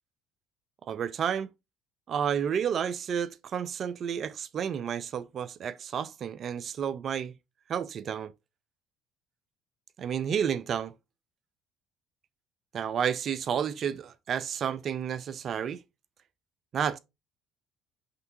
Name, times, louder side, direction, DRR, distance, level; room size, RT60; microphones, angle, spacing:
voice 1, 0.9-1.5 2.1-7.3 7.7-8.3 10.0-10.9 12.7-15.8 16.7-17.0, right 8 dB, 50° right, 0.4 m, -31 dB
5.3 x 3.4 x 2.7 m
hypercardioid pair, 65°, 0 cm